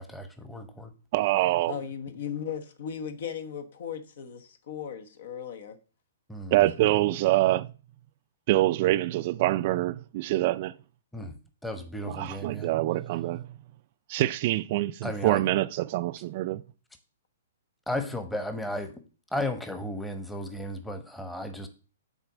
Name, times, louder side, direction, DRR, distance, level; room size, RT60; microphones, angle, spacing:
voice 1, 0.0-0.9 6.3-6.7 11.1-11.3 11.6-12.7 15.0-15.4 17.9-19.0 19.3-21.7, left 1 dB, 5° left, 1.0 m, -34 dB
voice 2, 1.1-1.8 6.5-7.7 8.5-10.7 12.1-13.6 14.1-16.6, right 16 dB, 45° right, 0.4 m, -25 dB
voice 3, 1.6-5.8 6.8-6.9 17.9-18.1, left 8 dB, 65° left, 1.1 m, -37 dB
6.6 x 4.1 x 6.1 m
hypercardioid pair, 135°, 0 cm